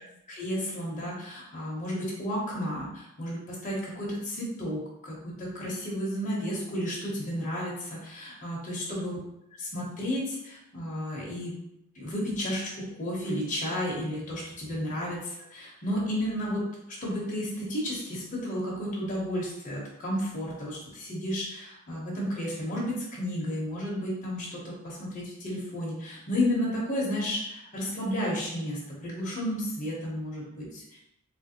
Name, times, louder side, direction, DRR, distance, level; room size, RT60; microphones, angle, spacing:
voice 1, 0.3-9.2 9.6-11.6 11.9-12.7 13.0-16.6 17.0-31.0, equal, 35° left, -5 dB, 0.7 m, -32 dB
3.2 x 2.4 x 2.7 m, 0.85 s
head